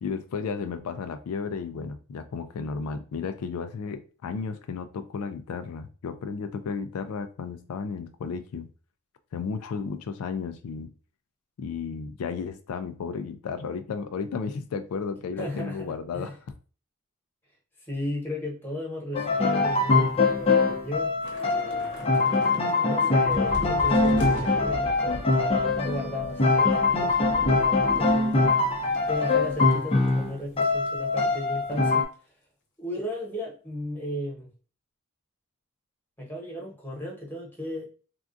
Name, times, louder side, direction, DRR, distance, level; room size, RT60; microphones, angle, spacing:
voice 1, 0.0-8.7 9.3-10.9 11.6-16.4, left 5 dB, 80° left, 0.3 m, -33 dB
voice 2, 15.4-16.3 17.9-21.1 21.4-21.9 22.8-28.5 29.0-32.1 32.8-34.5 36.2-37.9, left 1 dB, 10° left, 1.1 m, -35 dB
sound 1, 19.1-32.0, left 3 dB, 25° left, 0.5 m, -23 dB
Thunder / Rain, 21.2-29.8 30.1-30.3 30.6-30.9, equal, 55° left, 0.8 m, -39 dB
3.4 x 2.4 x 2.5 m
head